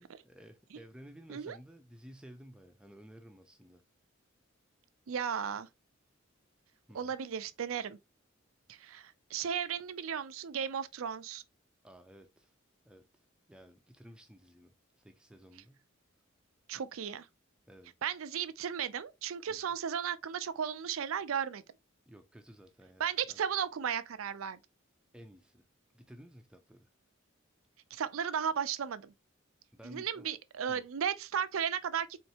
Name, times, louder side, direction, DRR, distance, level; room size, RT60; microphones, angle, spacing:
voice 1, 0.0-3.8 6.9-7.1 11.8-12.5 12.8-13.2 13.5-15.8 17.7-17.9 19.5-19.7 22.1-23.4 25.1-25.6 25.9-26.9 29.7-30.3 30.7-30.8, equal, 5° right, 0.4 m, -54 dB
voice 2, 5.1-5.7 6.9-8.0 8.7-11.4 16.7-17.3 18.0-21.6 23.0-24.6 27.9-29.1 29.8-32.2, right 8 dB, 90° right, 0.5 m, -35 dB
4.4 x 3.2 x 2.8 m
head